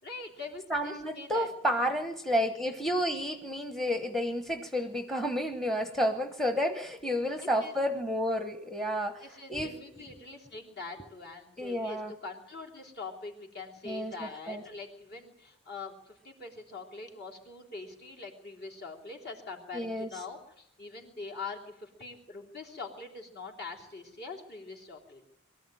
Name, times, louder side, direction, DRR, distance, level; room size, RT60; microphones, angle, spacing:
voice 1, 0.0-1.5 7.0-7.7 9.2-25.3, left 3 dB, 50° left, 1 dB, 3.4 m, -43 dB
voice 2, 0.7-9.2 9.5-9.7 11.6-12.1 13.8-14.1 14.5-14.6 19.7-20.1, equal, ahead, 7 dB, 1.0 m, -30 dB
23.0 x 13.5 x 9.1 m, 0.82 s
head